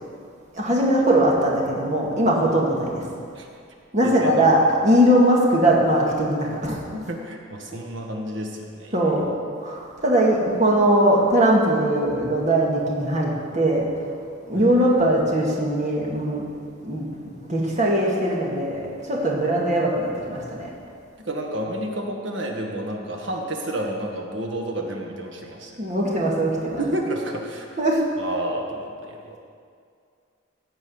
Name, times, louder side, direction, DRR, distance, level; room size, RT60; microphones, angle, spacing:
voice 1, 0.5-3.1 3.9-6.8 8.9-9.3 9.6-13.9 14.5-16.5 16.8-20.7 25.8-26.9 27.8-28.1, right 1 dB, 35° right, -3 dB, 2.1 m, -20 dB
voice 2, 6.9-8.9 14.5-14.7 21.2-26.0 26.8-27.7 28.2-29.4, right 1 dB, 60° right, 1 dB, 1.5 m, -30 dB
16.0 x 5.3 x 7.9 m, 2.3 s
head